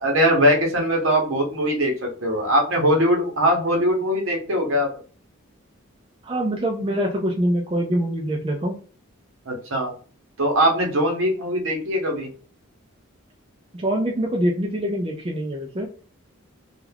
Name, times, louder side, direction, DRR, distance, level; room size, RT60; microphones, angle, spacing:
voice 1, 0.0-1.9 2.2-4.9 9.5-9.9 10.4-12.3, equal, 70° right, 1 dB, 0.8 m, -21 dB
voice 2, 6.2-8.7 13.7-15.9, right 1 dB, 25° right, 0 dB, 0.4 m, -24 dB
2.3 x 2.3 x 3.3 m, 0.40 s
head